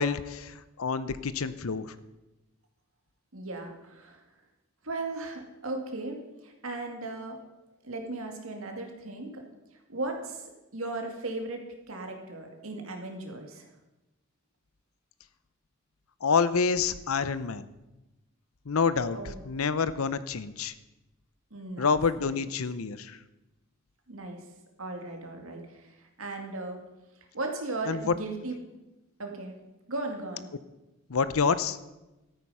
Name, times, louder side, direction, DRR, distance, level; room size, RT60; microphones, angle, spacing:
voice 1, 0.0-1.9 16.2-17.7 18.7-19.2 19.5-20.7 21.8-23.2 27.9-28.1 31.1-31.8, left 5 dB, 90° left, 15 dB, 0.7 m, -27 dB
voice 2, 3.3-4.2 4.8-7.4 7.8-9.4 9.9-13.7 19.1-19.4 21.5-22.5 24.1-24.4 24.8-26.8 27.3-28.6 29.2-29.6 29.9-30.5, right 2 dB, 75° right, 3 dB, 2.1 m, -37 dB
13.0 x 9.1 x 5.6 m, 1.0 s
head